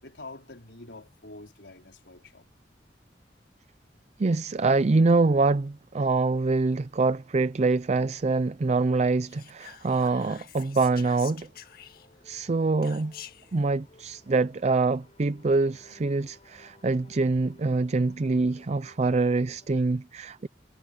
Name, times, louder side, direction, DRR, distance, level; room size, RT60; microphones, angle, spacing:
voice 1, 0.0-2.5, left 2 dB, 85° left, 4.3 m, -46 dB
voice 2, 4.2-11.5 12.2-13.1 13.5-20.5, right 3 dB, 40° right, 0.5 m, -25 dB
Whispering, 9.3-12.3 12.8-13.6, left 10 dB, 60° left, 1.8 m, -47 dB
sound 1, 11.2-19.7, left 1 dB, 40° left, 6.6 m, -58 dB
head